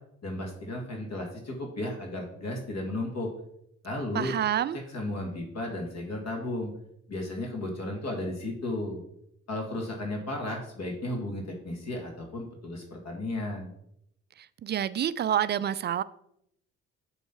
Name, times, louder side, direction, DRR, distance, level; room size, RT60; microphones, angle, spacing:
voice 1, 0.2-3.3 3.8-4.3 4.9-6.7 7.1-9.0 9.5-13.7, left 1 dB, 45° left, 1 dB, 1.9 m, -34 dB
voice 2, 4.1-4.8 14.6-16.0, right 10 dB, 30° right, 16 dB, 0.4 m, -27 dB
7.1 x 3.2 x 5.8 m, 0.73 s
hypercardioid pair, 50°, 35 cm